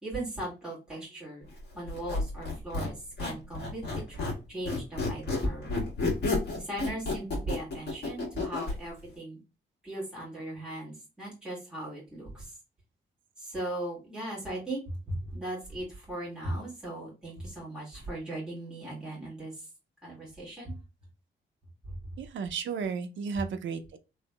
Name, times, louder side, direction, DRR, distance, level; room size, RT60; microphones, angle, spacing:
voice 1, 0.0-1.5 1.7-5.8 6.6-9.4 9.8-12.6 13.4-19.7 20.0-20.8 21.8-22.0, right 1 dB, 5° right, 1.9 m, -38 dB
Squeak, 1.9-4.4 4.7-8.8, left 3 dB, 60° left, 1.7 m, -31 dB
voice 2, 22.2-24.0, right 5 dB, 80° right, 0.5 m, -33 dB
3.4 x 3.0 x 2.2 m
wide cardioid pair, 165°, 19 cm